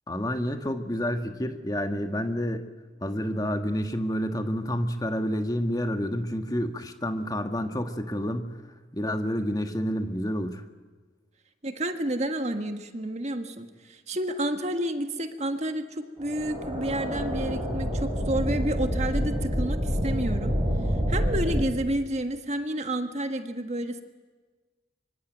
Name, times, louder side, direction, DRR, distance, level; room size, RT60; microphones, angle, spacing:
voice 1, 0.1-2.7 3.0-8.6 8.9-10.6, equal, 20° left, 6 dB, 1.6 m, -29 dB
voice 2, 11.6-20.6 21.1-24.0, right 1 dB, 35° right, 7 dB, 1.6 m, -30 dB
sound 1, 16.2-21.6, equal, 20° right, 5.3 m, -27 dB
24.5 x 24.5 x 9.2 m, 1.4 s
head